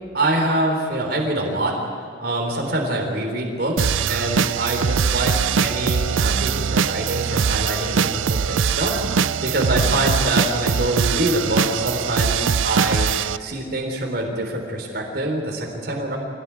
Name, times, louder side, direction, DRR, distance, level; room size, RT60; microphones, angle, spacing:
voice 1, 0.1-1.8 2.2-16.2, right 1 dB, 50° right, 1 dB, 3.9 m, -25 dB
sound 1, 3.8-13.4, right 6 dB, 85° right, 0.5 m, -22 dB
26.0 x 17.5 x 9.9 m, 2.2 s
head